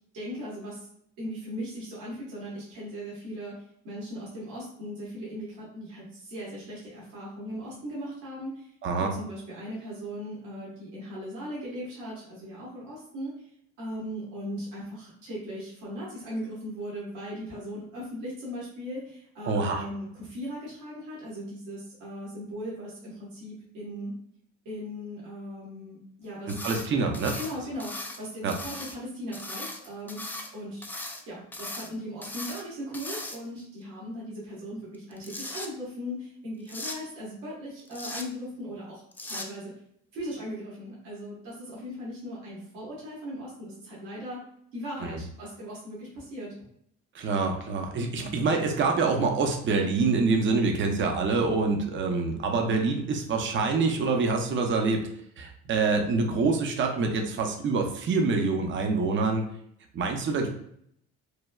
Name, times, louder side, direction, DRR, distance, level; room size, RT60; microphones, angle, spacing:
voice 1, 0.1-0.9 1.2-3.5 3.8-8.7 9.0-13.5 13.8-24.1 24.6-26.6 27.3-30.8 31.3-39.7 40.1-44.4 44.7-46.5, equal, 90° right, -7 dB, 1.2 m, -38 dB
voice 2, 8.8-9.1 19.5-19.8 26.5-27.4 28.4-28.5 45.0-45.2 47.1-55.0 55.4-59.4 59.9-60.5, right 4 dB, 40° right, 3 dB, 0.6 m, -26 dB
sound 1, 26.5-26.9 27.1-28.2 28.5-29.0 29.3-30.5 30.8-31.2 31.5-31.9 32.2-32.6 32.9-33.6 34.9-35.7 36.7-37.0 37.9-38.3 39.1-39.5, left 2 dB, 5° left, 0.3 m, -38 dB
3.1 x 2.2 x 2.2 m, 0.69 s
supercardioid pair, 75°, 31 cm